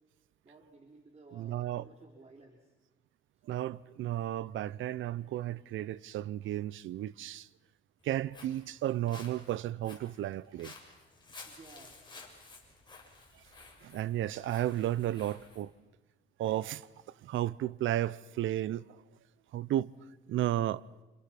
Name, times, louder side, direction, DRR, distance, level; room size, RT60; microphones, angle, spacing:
voice 1, 0.4-2.7 11.5-12.0 12.5-12.6, right 3 dB, 35° right, 3.9 m, -55 dB
voice 2, 1.3-1.9 3.4-7.5 8.0-10.7 13.8-15.7 16.4-16.9 17.2-19.0 19.5-19.9 20.3-20.8, right 13 dB, 80° right, 0.8 m, -33 dB
Walk footsteps, 8.0-15.6, left 3 dB, 25° left, 6.8 m, -53 dB
29.5 x 28.0 x 6.0 m
cardioid pair, 90°, 20 cm